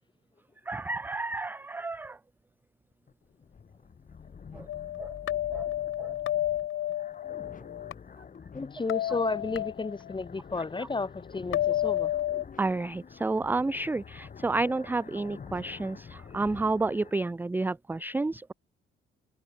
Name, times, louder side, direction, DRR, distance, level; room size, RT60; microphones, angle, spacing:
voice 1, 0.7-2.2 4.5-4.7 5.0-5.2 5.5-5.7 6.0-6.2 12.6-18.5, right 3 dB, 10° right, 0.4 m, -30 dB
sound 1, 2.9-17.1, left 6 dB, 40° left, 3.5 m, -48 dB
sound 2, 4.7-7.9 8.9-10.2 11.5-12.4, left 13 dB, 80° left, 3.7 m, -31 dB
voice 2, 8.5-12.1, left 3 dB, 25° left, 3.3 m, -32 dB
open air
cardioid pair, 90°, 20 cm